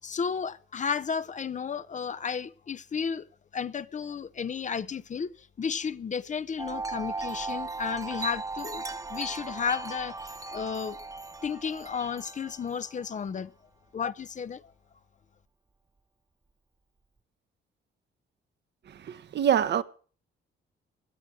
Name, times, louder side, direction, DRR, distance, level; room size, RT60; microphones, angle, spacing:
voice 1, 0.0-3.2 3.5-8.8 9.1-11.0 11.4-13.5 13.9-14.7, left 6 dB, 40° left, 0.8 m, -33 dB
Wind chime, 6.6-13.1, right 3 dB, 15° right, 0.8 m, -37 dB
voice 2, 18.9-19.8, right 9 dB, 60° right, 1.2 m, -26 dB
17.0 x 11.5 x 6.2 m
cardioid pair, 90°, 20 cm